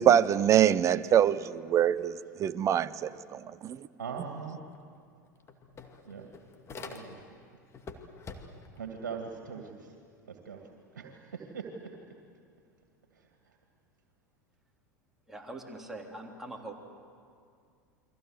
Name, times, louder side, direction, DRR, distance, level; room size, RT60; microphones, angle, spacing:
voice 1, 0.0-3.9, right 10 dB, 30° right, 0.8 m, -25 dB
voice 2, 4.0-4.6 6.1-6.3 6.8-7.2 8.8-9.7 10.5-10.6 10.9-11.9, right 6 dB, 70° right, 2.2 m, -40 dB
sound 1, 4.7-4.8 5.1-7.4 7.7-8.8, left 4 dB, 25° left, 2.4 m, -46 dB
voice 3, 15.3-16.7, right 2 dB, 5° right, 3.5 m, -42 dB
29.5 x 23.0 x 8.0 m
figure-of-eight pair, 80°, 10 cm